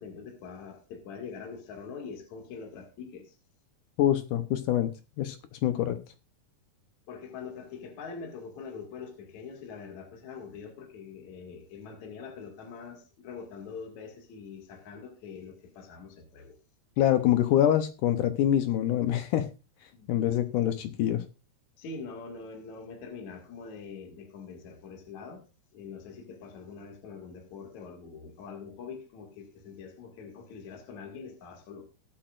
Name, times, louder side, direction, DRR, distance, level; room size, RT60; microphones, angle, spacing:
voice 1, 0.0-3.3 7.1-16.6 19.9-20.1 21.8-25.4 25.7-31.9, left 5 dB, 50° left, 3.0 m, -44 dB
voice 2, 4.0-4.9 5.2-5.4 5.6-6.0 17.0-19.5 20.1-21.2, left 11 dB, 75° left, 1.9 m, -25 dB
20.0 x 8.8 x 2.5 m
omnidirectional pair, 4.7 m